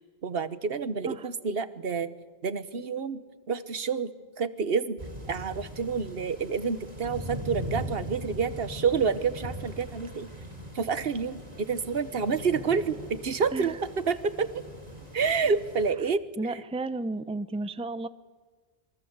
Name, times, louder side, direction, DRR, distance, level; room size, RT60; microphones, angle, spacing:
voice 1, 0.2-2.1 2.4-4.1 4.4-5.0 5.3-10.3 10.7-14.6 15.1-16.2, right 5 dB, 70° right, 13 dB, 1.4 m, -28 dB
sound 1, 5.0-15.9, equal, 40° right, 3.5 m, -40 dB
voice 2, 16.4-18.1, right 2 dB, 5° right, 13 dB, 0.7 m, -33 dB
27.0 x 23.5 x 8.1 m, 1.4 s
omnidirectional pair, 1.0 m